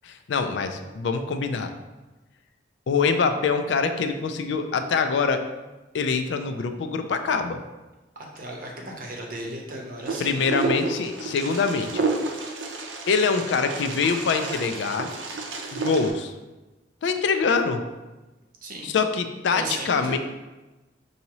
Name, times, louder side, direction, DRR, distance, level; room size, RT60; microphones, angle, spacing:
voice 1, 0.0-1.7 2.9-5.4 5.9-7.6 10.2-12.0 13.1-15.1 15.7-16.3 17.0-17.8 18.8-20.2, left 5 dB, 70° left, 7 dB, 0.4 m, -24 dB
voice 2, 8.2-10.4 18.6-18.9 19.5-20.2, right 1 dB, 50° right, 0 dB, 0.7 m, -35 dB
Wind, 10.1-16.1, right 3 dB, 90° right, 0.6 m, -30 dB
5.6 x 2.7 x 2.9 m, 1.1 s
head